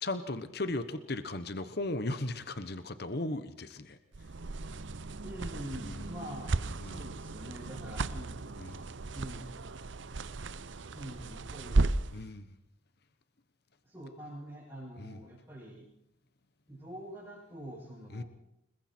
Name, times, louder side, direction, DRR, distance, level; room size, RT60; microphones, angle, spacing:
voice 1, 0.0-4.0 6.8-7.0 8.6-8.8 12.1-12.5 15.0-15.2 18.1-18.2, left 2 dB, 50° left, 11 dB, 1.1 m, -36 dB
sound 1, 4.1-12.2, right 3 dB, 65° right, 0.8 m, -35 dB
voice 2, 5.2-6.5 6.8-8.9 9.1-9.5 10.9-11.8 13.8-15.9 16.7-18.3, equal, 15° right, -7 dB, 6.8 m, -45 dB
29.5 x 21.0 x 4.5 m, 0.85 s
head